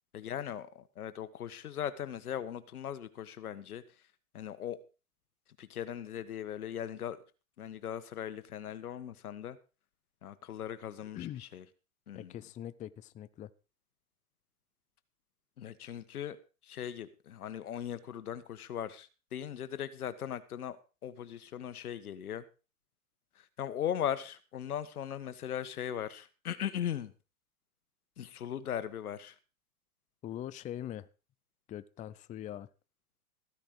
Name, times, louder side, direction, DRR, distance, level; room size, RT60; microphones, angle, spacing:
voice 1, 0.1-3.8 4.3-4.8 5.6-7.2 7.6-9.6 10.2-11.6 12.1-12.4 15.6-16.4 16.6-20.8 21.0-22.4 23.4-27.1 28.2-29.3, left 10 dB, 80° left, 13 dB, 1.5 m, -39 dB
voice 2, 12.2-13.5 30.2-31.1 31.7-32.7, left 11 dB, 15° left, 15 dB, 0.6 m, -42 dB
14.5 x 10.0 x 4.8 m, 0.33 s
hypercardioid pair, 115°, 44 cm